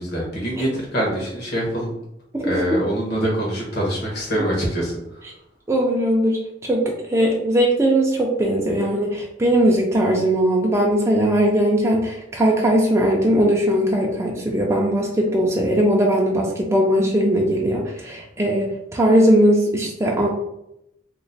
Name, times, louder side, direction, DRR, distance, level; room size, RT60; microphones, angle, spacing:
voice 1, 0.0-1.9 2.4-4.9, equal, 60° left, -3 dB, 1.2 m, -24 dB
voice 2, 2.3-2.8 5.7-20.3, right 1 dB, 15° right, -2 dB, 0.4 m, -19 dB
3.0 x 2.1 x 4.0 m, 0.82 s
head